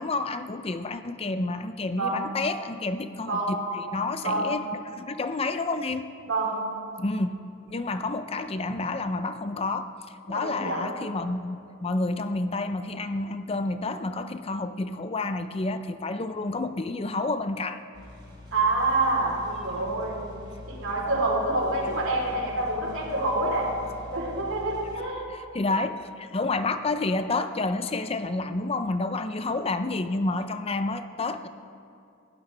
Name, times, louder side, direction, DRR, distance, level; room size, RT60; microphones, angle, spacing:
voice 1, 0.0-3.6 3.9-6.1 7.0-7.4 7.6-17.8 25.3-31.5, left 2 dB, 30° left, 10 dB, 0.5 m, -29 dB
voice 2, 1.9-2.4 3.3-3.7 4.2-4.6 6.3-6.7 10.3-10.9 18.5-23.8 24.1-25.3, right 2 dB, 85° right, -2 dB, 3.5 m, -27 dB
sound 1, 17.9-25.0, left 1 dB, 25° right, 4.4 m, -44 dB
21.0 x 16.0 x 3.3 m, 2.5 s
head